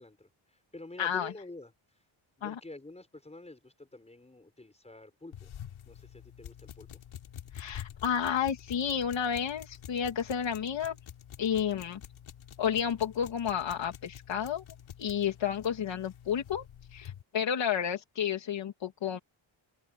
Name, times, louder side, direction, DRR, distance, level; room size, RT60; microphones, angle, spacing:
voice 1, 0.0-2.0 2.4-5.5 5.9-6.9, left 2 dB, 15° left, 5.2 m, -48 dB
voice 2, 1.0-1.3 2.4-2.5 7.5-11.0 11.4-12.0 12.6-14.6 15.0-16.6 16.9-19.2, left 8 dB, 65° left, 2.7 m, -31 dB
sound 1, 5.3-17.2, left 9 dB, 85° left, 3.3 m, -48 dB
wide cardioid pair, 135°, 48 cm